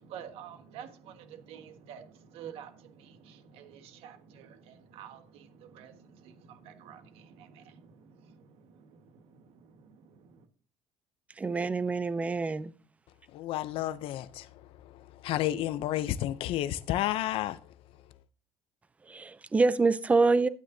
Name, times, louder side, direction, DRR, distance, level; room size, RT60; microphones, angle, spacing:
voice 1, 0.0-10.5, right 8 dB, 70° right, 1.5 m, -49 dB
voice 2, 11.4-12.7 19.1-20.5, right 3 dB, 15° right, 0.4 m, -26 dB
voice 3, 13.3-14.5 15.2-17.6, left 13 dB, 60° left, 0.5 m, -31 dB
11.5 x 9.2 x 2.7 m
cardioid pair, 150°, 10 cm